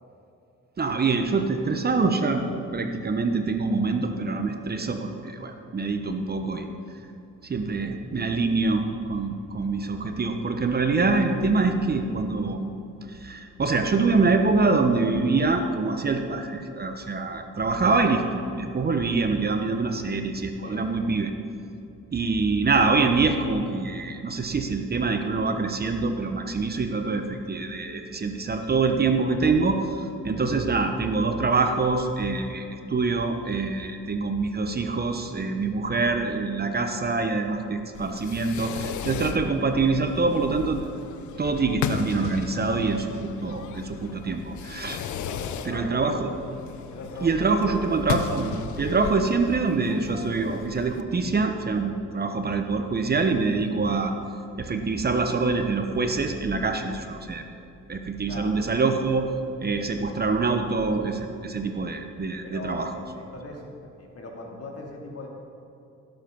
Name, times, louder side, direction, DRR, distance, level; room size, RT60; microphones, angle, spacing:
voice 1, 0.8-6.7 7.4-12.7 13.1-21.3 22.1-40.8 41.4-45.0 45.7-46.3 47.2-54.1 54.6-57.4 57.9-59.3 59.6-62.9, right 3 dB, 30° right, 6 dB, 1.0 m, -25 dB
Fireworks, 37.9-51.0, left 9 dB, 70° left, 0.7 m, -35 dB
voice 2, 44.9-46.2 46.9-48.1 58.3-58.5 62.4-65.3, left 2 dB, 50° left, 0 dB, 2.7 m, -40 dB
16.5 x 7.9 x 5.4 m, 2.7 s
cardioid pair, 90°, 30 cm